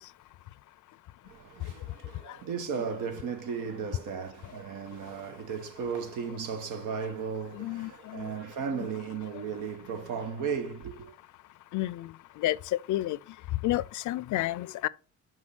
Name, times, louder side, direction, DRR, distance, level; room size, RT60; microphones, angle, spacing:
voice 1, 1.3-11.1, right 6 dB, 90° right, 1.3 m, -35 dB
voice 2, 7.5-8.3 11.7-12.1 12.4-13.2 13.6-14.9, left 15 dB, 75° left, 0.5 m, -30 dB
6.3 x 5.6 x 5.9 m
cardioid pair, 90°, 30 cm